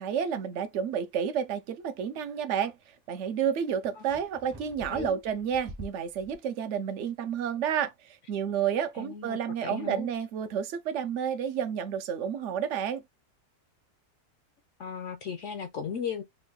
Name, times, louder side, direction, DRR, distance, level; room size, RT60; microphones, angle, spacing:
voice 1, 0.0-2.7 3.1-13.0, right 8 dB, 75° right, 0.6 m, -30 dB
sound 1, 4.0-6.4, right 1 dB, 30° right, 0.4 m, -45 dB
voice 2, 4.9-5.2 9.0-10.1 14.8-16.2, left 7 dB, 65° left, 0.7 m, -36 dB
3.4 x 2.2 x 3.7 m
omnidirectional pair, 1.8 m